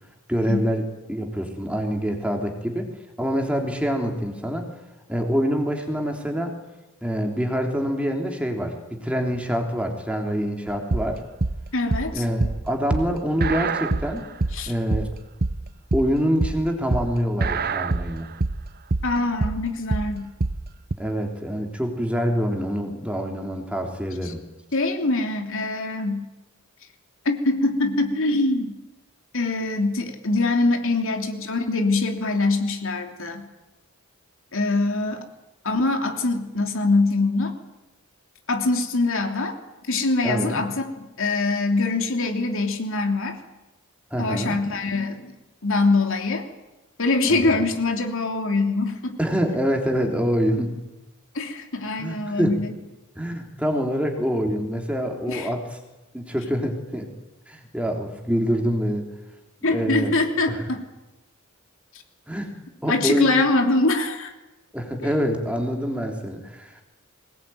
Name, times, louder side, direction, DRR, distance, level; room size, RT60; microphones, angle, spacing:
voice 1, 0.3-2.9 3.2-4.7 5.1-6.6 7.0-11.2 12.1-14.3 14.7-15.1 15.9-18.3 21.0-24.4 40.2-40.6 44.1-44.6 47.3-47.6 49.2-50.8 52.0-52.6 53.2-55.8 56.1-57.1 57.5-59.1 59.7-60.1 60.5-60.6 62.3-62.5 62.8-63.4 64.7-66.8, equal, 5° right, 3 dB, 3.5 m, -25 dB
sound 1, 10.7-20.9, right 3 dB, 45° right, 0.9 m, -26 dB
voice 2, 11.7-12.2 14.5-14.7 19.0-20.3 24.2-24.3 24.7-26.3 27.2-28.7 29.3-33.4 34.5-35.2 35.6-37.6 38.5-39.6 39.9-43.4 44.2-45.3 45.6-46.5 47.0-49.2 51.3-52.7 55.3-55.5 59.6-60.8 62.9-64.3 65.0-65.3, left 2 dB, 65° left, 4 dB, 3.3 m, -23 dB
23.5 x 20.0 x 9.3 m, 1.0 s
head